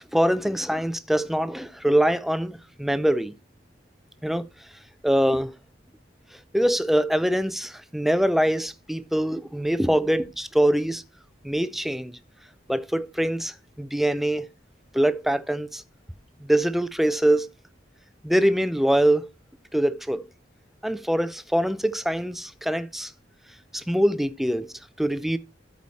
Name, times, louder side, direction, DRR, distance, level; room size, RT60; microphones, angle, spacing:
voice 1, 0.1-3.3 4.2-4.5 5.0-5.5 6.5-11.0 11.4-12.1 12.7-14.5 14.9-15.8 16.4-17.5 18.2-19.3 19.7-20.3 20.8-23.1 23.7-25.4, right 1 dB, ahead, 0.5 m, -23 dB
12.5 x 4.8 x 4.1 m
head